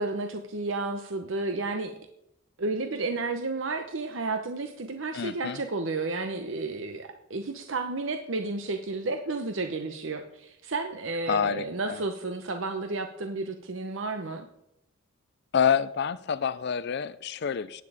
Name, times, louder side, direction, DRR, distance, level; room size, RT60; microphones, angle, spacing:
voice 1, 0.0-1.9 2.6-14.5, right 3 dB, 70° right, 7 dB, 0.9 m, -32 dB
voice 2, 5.1-5.6 11.3-11.7 15.5-17.8, left 7 dB, 55° left, 16 dB, 0.5 m, -27 dB
16.0 x 9.5 x 4.9 m, 0.81 s
head